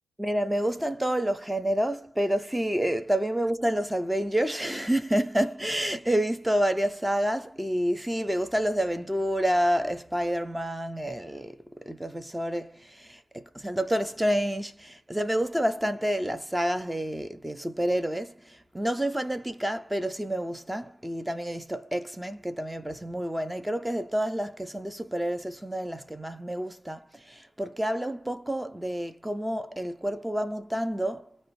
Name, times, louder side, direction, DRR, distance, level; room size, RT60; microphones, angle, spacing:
voice 1, 0.2-11.6 11.9-31.3, equal, 5° right, 0.4 m, -29 dB
2.6 x 2.1 x 2.9 m
cardioid pair, 90°, 0 cm